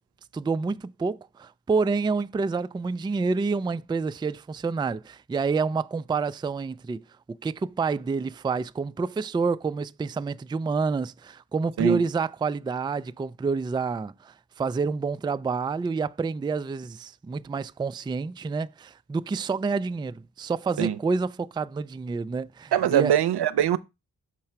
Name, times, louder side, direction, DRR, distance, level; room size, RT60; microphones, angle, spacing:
voice 1, 0.3-7.0 7.4-23.1, right 4 dB, 15° right, 0.3 m, -28 dB
voice 2, 22.7-23.8, right 10 dB, 80° right, 0.6 m, -22 dB
6.7 x 3.2 x 5.7 m
cardioid pair, 45°, 39 cm